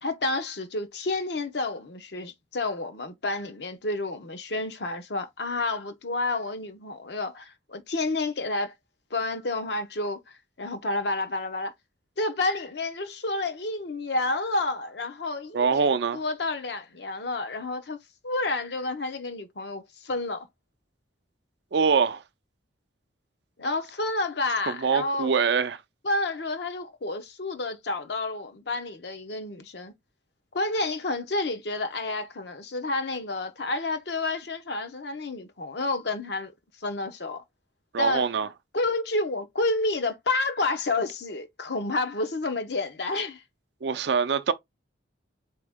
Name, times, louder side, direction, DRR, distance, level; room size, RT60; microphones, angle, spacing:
voice 1, 0.0-8.7 9.1-11.7 12.2-18.0 18.2-20.5 23.6-25.4 26.0-29.9 30.5-36.5 36.8-37.4 38.0-38.3 38.7-43.4, left 2 dB, 60° left, 0.8 m, -30 dB
voice 2, 15.5-16.2 21.7-22.2 24.8-25.8 37.9-38.5 43.8-44.5, right 5 dB, 65° right, 0.5 m, -24 dB
4.3 x 2.8 x 3.5 m
head